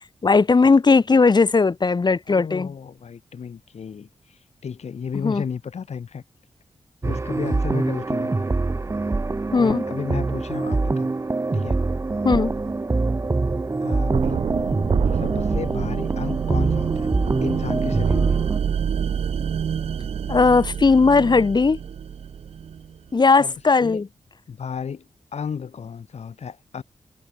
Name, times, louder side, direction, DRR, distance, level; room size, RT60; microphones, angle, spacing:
voice 1, 0.2-2.7 5.2-5.4 9.5-9.8 12.2-12.5 20.3-21.8 23.1-24.1, left 4 dB, 40° left, 1.7 m, -17 dB
voice 2, 2.3-6.2 7.0-8.5 9.5-11.1 11.5-11.8 13.8-14.5 15.1-17.1 17.4-18.4 23.4-24.0 24.5-26.8, left 6 dB, 75° left, 3.4 m, -33 dB
sound 1, 7.0-18.6, right 3 dB, 25° right, 0.9 m, -24 dB
sound 2, 14.1-23.0, right 7 dB, 60° right, 0.5 m, -26 dB
wide cardioid pair, 100°, 11 cm